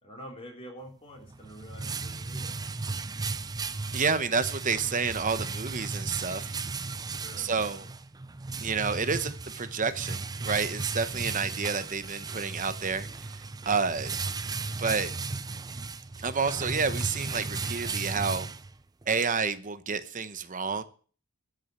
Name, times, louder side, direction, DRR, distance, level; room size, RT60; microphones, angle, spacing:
voice 1, 0.0-2.7 7.0-7.9, equal, 25° left, 3.8 m, -47 dB
sound 1, 1.2-19.1, right 4 dB, 15° right, 0.5 m, -35 dB
voice 2, 3.9-6.6 7.4-7.8 8.6-13.1 13.7-14.2 14.8-15.1 16.2-18.5 19.1-20.8, right 5 dB, 35° right, 0.9 m, -29 dB
12.5 x 6.3 x 9.4 m
head